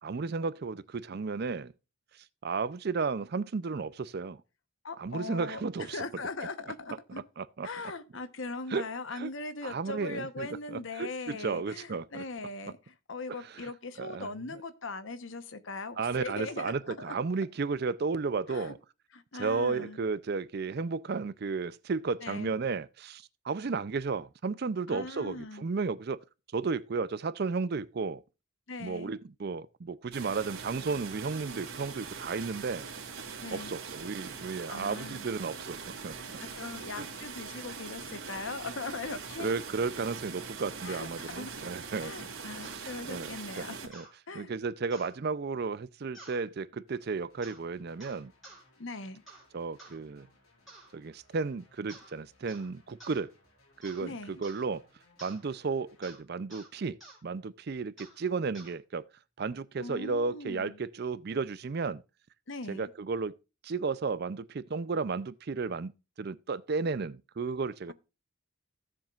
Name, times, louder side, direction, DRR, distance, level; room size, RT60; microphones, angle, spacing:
voice 1, 0.0-1.7 2.1-4.4 5.0-6.0 7.4-7.7 8.7-8.9 9.1-9.3 9.6-12.2 13.4-13.7 14.0-14.3 16.0-18.8 19.4-26.2 26.5-28.2 28.8-32.9 33.5-36.2 37.0-37.1 39.4-42.1 42.5-43.3 43.6-44.1 44.3-48.3 49.5-50.3 50.9-53.4 53.8-54.9 55.2-59.0 59.4-62.0 62.7-63.4 63.6-65.9 66.2-67.9, right 4 dB, 45° right, 0.4 m, -33 dB
voice 2, 4.8-7.2 7.6-17.2 18.5-18.7 19.1-20.0 22.2-22.5 24.9-25.7 28.7-29.2 33.4-33.8 34.7-35.3 36.4-39.5 40.8-41.5 42.0-43.8 44.3-44.5 48.8-49.2 54.0-54.3 59.8-60.8 62.5-62.9, left 3 dB, 60° left, 1.0 m, -40 dB
sound 1, 30.1-43.9, right 5 dB, 85° right, 2.6 m, -42 dB
sound 2, 42.6-42.8 43.9-44.1 44.9-45.2 46.1-46.4 47.4-47.6 48.0-48.6 49.3-49.5 49.8-50.0 50.7-50.9 51.9-52.1 52.5-52.7 53.0-53.2 53.8-54.1 54.4-54.7 55.2-55.4 56.0-56.2 56.5-56.7 57.0-57.2 58.0-58.2 58.5-58.7, right 2 dB, ahead, 4.1 m, -51 dB
sound 3, 46.9-56.0, left 2 dB, 85° left, 4.9 m, -66 dB
16.0 x 7.3 x 2.4 m
head